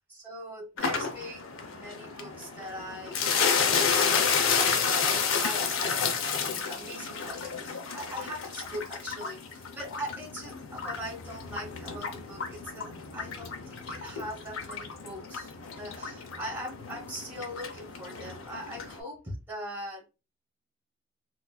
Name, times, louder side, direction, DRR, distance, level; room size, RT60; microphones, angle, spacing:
voice 1, 0.1-4.1 4.5-6.0 6.4-20.0, equal, 10° right, -3 dB, 1.0 m, -41 dB
sound 1, 0.8-19.0, left 6 dB, 75° left, 0.6 m, -31 dB
3.8 x 2.4 x 2.3 m, 0.30 s
head